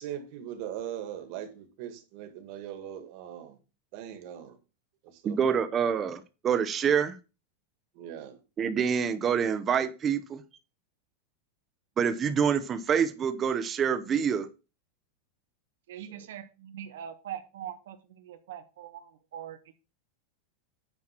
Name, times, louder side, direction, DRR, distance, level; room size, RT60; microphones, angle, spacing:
voice 1, 0.0-3.6 3.9-4.6 5.0-5.6 7.9-8.4 16.0-16.3, right 10 dB, 45° right, 1.8 m, -40 dB
voice 2, 5.2-7.1 8.6-10.4 12.0-14.5, right 7 dB, 20° right, 0.8 m, -26 dB
voice 3, 15.9-19.8, right 10 dB, 75° right, 1.1 m, -42 dB
9.5 x 4.5 x 5.9 m
supercardioid pair, 165°, 0 cm